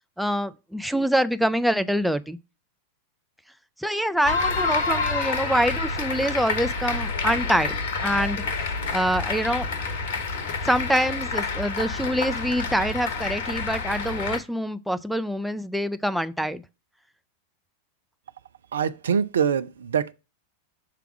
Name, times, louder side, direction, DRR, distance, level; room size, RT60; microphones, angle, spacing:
voice 1, 0.2-2.4 3.8-7.7 8.0-8.4 8.9-9.7 10.6-16.6, equal, ahead, 0.4 m, -25 dB
sound 1, 4.2-14.4, left 4 dB, 55° left, 0.9 m, -28 dB
voice 2, 18.7-20.1, right 7 dB, 65° right, 0.4 m, -24 dB
5.8 x 3.5 x 5.9 m
figure-of-eight pair, 90°, 0 cm